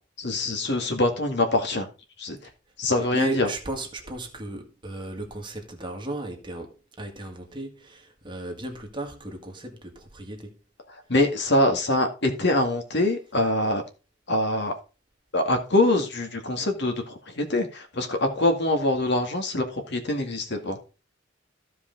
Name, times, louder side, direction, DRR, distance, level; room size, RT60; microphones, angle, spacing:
voice 1, 0.2-1.9 2.2-2.4 2.8-3.5 11.1-13.8 14.3-14.7 15.3-20.8, left 1 dB, 60° left, 2.0 m, -24 dB
voice 2, 3.0-10.6, right 2 dB, 25° right, 1.9 m, -36 dB
14.5 x 5.1 x 3.9 m
head